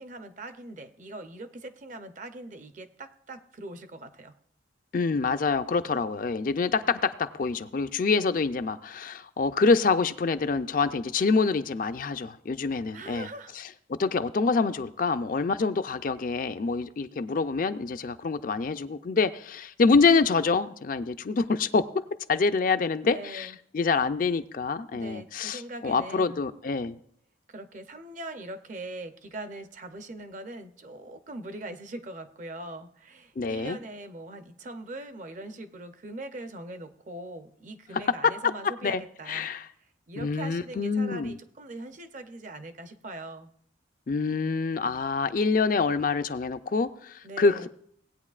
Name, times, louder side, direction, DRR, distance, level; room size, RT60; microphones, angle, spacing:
voice 1, 0.0-4.4 12.9-13.6 23.0-23.6 24.9-26.4 27.5-39.5 40.1-43.5 47.2-47.7, right 2 dB, 40° right, 0.6 m, -41 dB
voice 2, 4.9-13.3 13.6-13.7 13.9-21.9 22.3-27.0 33.4-33.8 38.2-39.0 39.3-39.7 40.2-41.3 44.1-47.7, left 4 dB, 45° left, 0.4 m, -26 dB
18.0 x 8.9 x 2.4 m
head